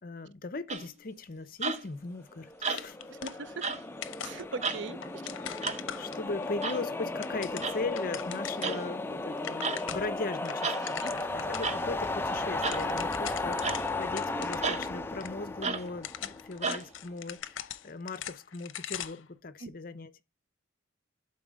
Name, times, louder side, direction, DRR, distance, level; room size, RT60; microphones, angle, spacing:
voice 1, 0.0-3.0 6.0-20.2, left 3 dB, 45° left, 0.7 m, -39 dB
sound 1, 0.7-1.0 1.6-2.0 2.6-3.1 3.6-3.8 4.6-4.9 5.6-5.8 6.6-6.8 7.6-7.8 8.6-8.8 9.6-9.8 10.6-10.8 11.6-11.8 12.6-12.9 13.6-13.8 14.6-14.8 15.6-15.9 16.6-16.9, right 4 dB, 35° right, 0.7 m, -33 dB
sound 2, 2.5-16.8, left 2 dB, 10° left, 0.5 m, -35 dB
sound 3, 2.7-6.5 7.0-8.8 9.1-9.2 9.4-10.2 10.4-11.7 12.0-12.1 12.4-14.9 15.2-15.3 15.9-19.3, left 10 dB, 80° left, 0.6 m, -41 dB
voice 2, 3.1-3.7 4.2-5.3 10.8-11.4 19.6-19.7, right 4 dB, 70° right, 0.6 m, -41 dB
11.5 x 4.1 x 3.6 m
head